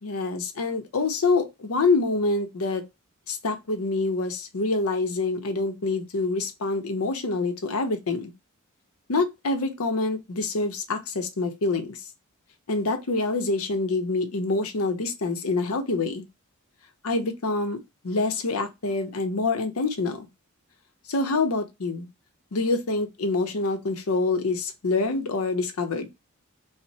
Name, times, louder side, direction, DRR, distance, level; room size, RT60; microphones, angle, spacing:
voice 1, 0.0-2.8 3.3-8.3 9.1-12.0 12.7-16.2 17.0-17.8 18.0-20.3 21.1-22.1 22.5-26.1, left 3 dB, 75° left, 0.7 m, -26 dB
4.0 x 2.1 x 2.7 m
head